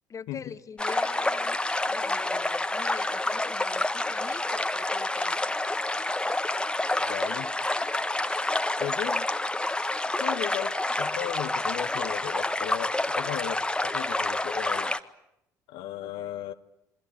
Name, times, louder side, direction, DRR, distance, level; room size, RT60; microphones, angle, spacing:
voice 1, 0.1-1.6 1.8-5.3 16.0-16.3, left 6 dB, 35° left, 13 dB, 1.6 m, -43 dB
sound 1, 0.8-15.0, left 2 dB, 10° left, 1.6 m, -28 dB
voice 2, 7.1-7.5 8.5-9.3 10.2-15.0 15.7-16.5, left 13 dB, 65° left, 7 dB, 1.2 m, -36 dB
28.0 x 24.0 x 8.6 m, 0.82 s
hypercardioid pair, 55°, 9 cm